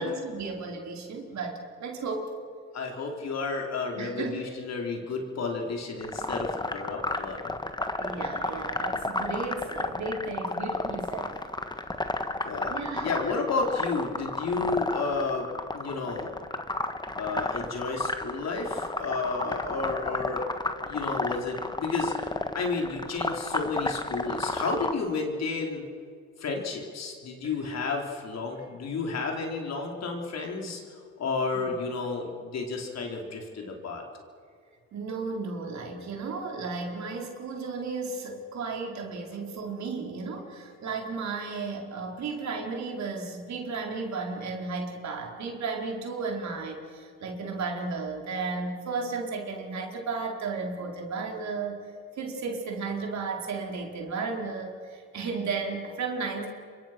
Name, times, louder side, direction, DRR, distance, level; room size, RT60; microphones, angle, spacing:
voice 1, 0.0-2.3 4.0-4.4 8.0-11.4 12.7-13.1 31.6-31.7 34.9-56.5, right 4 dB, 65° right, 1 dB, 4.6 m, -34 dB
voice 2, 2.7-7.5 12.4-16.3 17.1-20.4 20.8-25.8 26.4-30.8 31.2-34.0, left 4 dB, 60° left, 1 dB, 4.4 m, -31 dB
sound 1, 6.0-24.9, left 2 dB, 15° left, 1.6 m, -32 dB
27.0 x 24.0 x 6.2 m, 2.3 s
cardioid pair, 90°, 30 cm